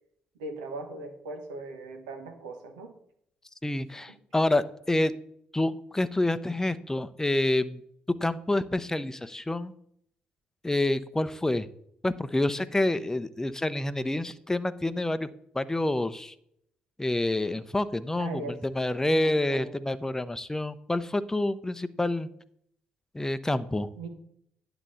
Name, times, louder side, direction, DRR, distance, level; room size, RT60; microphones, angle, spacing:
voice 1, 0.4-2.9 12.9-13.1 18.2-18.6 19.0-19.7 23.9-24.1, right 3 dB, 80° right, 5 dB, 1.3 m, -39 dB
voice 2, 3.6-5.1 5.5-7.8 8.2-9.7 10.6-11.7 12.0-15.3 15.5-16.3 17.0-22.3 23.1-23.9, left 1 dB, 10° left, 13 dB, 0.7 m, -28 dB
9.7 x 4.0 x 7.0 m, 0.70 s
hypercardioid pair, 45°, 4 cm